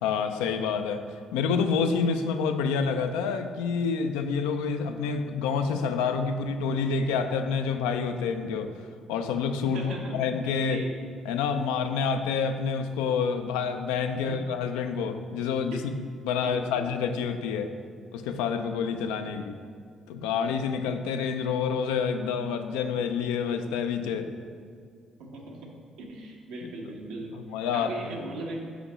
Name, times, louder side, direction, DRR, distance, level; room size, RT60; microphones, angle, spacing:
voice 1, 0.0-8.7 9.1-10.8 11.3-17.7 18.1-19.6 20.1-24.3 27.3-27.9, left 6 dB, 90° left, 7 dB, 0.4 m, -28 dB
voice 2, 9.7-10.2 10.7-10.9 14.1-14.4 15.7-15.8 16.4-16.9 25.2-25.6 26.1-27.4 27.7-28.6, right 2 dB, 80° right, -1 dB, 1.0 m, -38 dB
5.1 x 4.5 x 4.9 m, 2.1 s
supercardioid pair, 60°, 0 cm